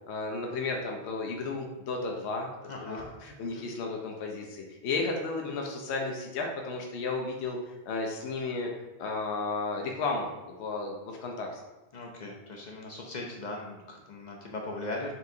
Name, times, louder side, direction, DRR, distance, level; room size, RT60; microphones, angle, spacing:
voice 1, 0.1-2.5 2.8-8.7 9.0-11.6, left 3 dB, 80° left, 1 dB, 0.9 m, -33 dB
voice 2, 2.7-3.1 3.5-3.7 11.9-15.1, left 2 dB, 55° left, -1 dB, 0.6 m, -39 dB
4.2 x 3.6 x 2.7 m, 1.1 s
omnidirectional pair, 1.1 m